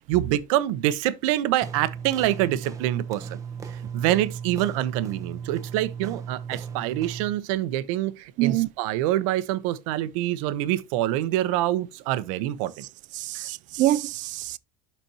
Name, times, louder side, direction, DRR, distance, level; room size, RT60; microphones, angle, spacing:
voice 1, 0.1-3.4 3.7-12.8 13.3-13.4, right 14 dB, 85° right, 0.9 m, -26 dB
sound 1, 1.6-7.4, right 6 dB, 20° right, 0.9 m, -36 dB
voice 2, 8.4-8.7 13.2-14.6, right 15 dB, 50° right, 0.4 m, -25 dB
12.0 x 4.4 x 2.9 m
cardioid pair, 140°, 17 cm